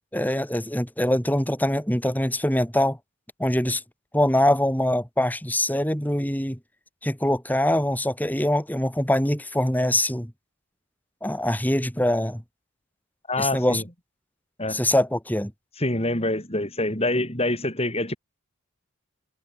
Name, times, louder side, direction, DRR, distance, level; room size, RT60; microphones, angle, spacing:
voice 1, 0.1-3.0 3.4-3.8 4.1-6.6 7.0-10.3 11.2-12.4 13.4-13.8 14.7-15.5, left 1 dB, 10° left, 4.1 m, -23 dB
voice 2, 13.3-13.8 14.6-14.8 15.8-18.2, left 1 dB, 25° left, 7.3 m, -25 dB
head